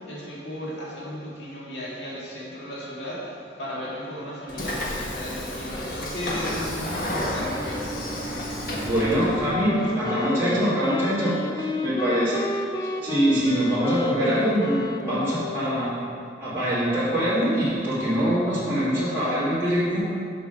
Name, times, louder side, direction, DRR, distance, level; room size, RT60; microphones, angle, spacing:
voice 1, 0.1-8.1 8.6-8.7, left 1 dB, 75° left, -6 dB, 1.9 m, -35 dB
Train / Sliding door, 4.5-9.5, left 1 dB, 50° left, 1.3 m, -31 dB
voice 2, 8.8-12.3 12.8-16.1 16.4-20.0, equal, 15° right, -13 dB, 2.2 m, -24 dB
Wind instrument woodwind instrument, 9.5-16.0, left 2 dB, 20° left, 0.4 m, -30 dB
6.7 x 6.1 x 5.3 m, 2.3 s
head